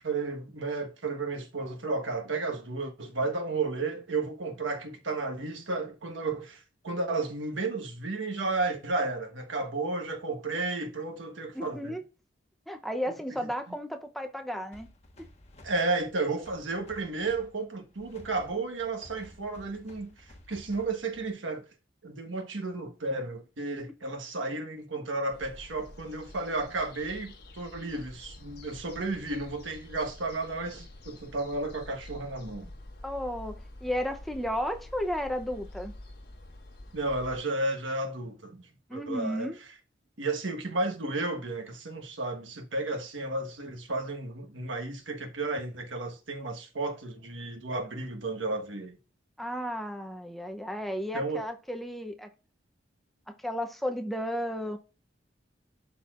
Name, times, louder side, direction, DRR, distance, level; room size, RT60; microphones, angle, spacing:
voice 1, 0.0-12.0 15.6-21.6 22.0-32.7 36.9-39.5 40.2-49.0 51.1-51.4, right 3 dB, 90° right, 1.3 m, -33 dB
voice 2, 11.5-12.0 12.7-14.9 33.0-35.9 38.9-39.6 49.4-52.3 53.3-54.8, equal, ahead, 0.6 m, -33 dB
sound 1, 14.7-21.5, left 1 dB, 35° left, 1.3 m, -54 dB
sound 2, 25.3-37.4, left 1 dB, 55° left, 1.4 m, -47 dB
11.5 x 4.3 x 2.4 m
head